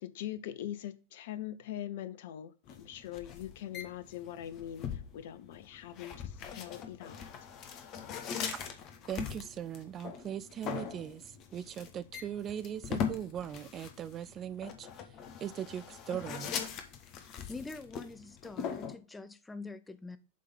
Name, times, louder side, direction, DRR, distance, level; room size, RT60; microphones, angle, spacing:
voice 1, 0.0-7.3, left 11 dB, 55° left, 0.7 m, -42 dB
sound 1, 2.7-19.0, left 7 dB, 35° left, 1.3 m, -41 dB
voice 2, 9.1-14.9 15.4-16.5, right 10 dB, 30° right, 0.6 m, -39 dB
voice 3, 17.5-20.2, left 3 dB, 10° left, 0.7 m, -45 dB
7.6 x 3.7 x 5.4 m
figure-of-eight pair, 90°, 0 cm